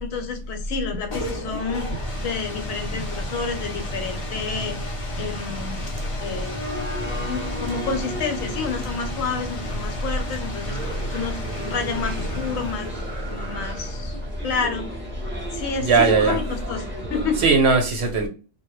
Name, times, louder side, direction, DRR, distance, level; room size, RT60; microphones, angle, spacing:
voice 1, 0.0-1.9 2.2-4.8 5.2-5.8 6.2-6.6 7.3-10.8 11.1-12.9 13.3-14.2 14.4-14.8 15.5-17.4, left 5 dB, 85° left, 1.0 m, -29 dB
sound 1, 0.8-17.5, left 1 dB, 55° left, 0.3 m, -34 dB
sound 2, 6.4-17.5, equal, 15° right, 0.4 m, -34 dB
voice 2, 15.8-16.4 17.4-18.3, right 4 dB, 65° right, 0.7 m, -18 dB
2.2 x 2.0 x 2.9 m
omnidirectional pair, 1.4 m